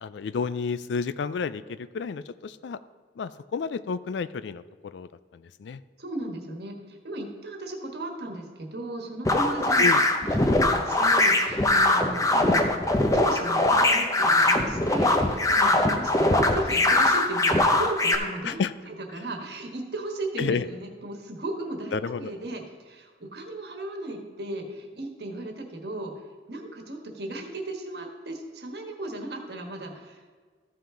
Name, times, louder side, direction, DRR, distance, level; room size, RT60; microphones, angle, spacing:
voice 1, 0.0-2.8 3.2-5.8 9.8-10.0 18.4-18.7 20.4-20.7 21.9-22.3, left 5 dB, 70° left, 15 dB, 0.4 m, -31 dB
voice 2, 6.0-12.6 13.1-18.6 18.9-26.1 26.5-30.3, right 1 dB, 60° right, 2 dB, 1.4 m, -36 dB
sound 1, 9.2-18.1, left 2 dB, 20° left, 0.6 m, -21 dB
14.0 x 5.7 x 3.8 m, 1.5 s
head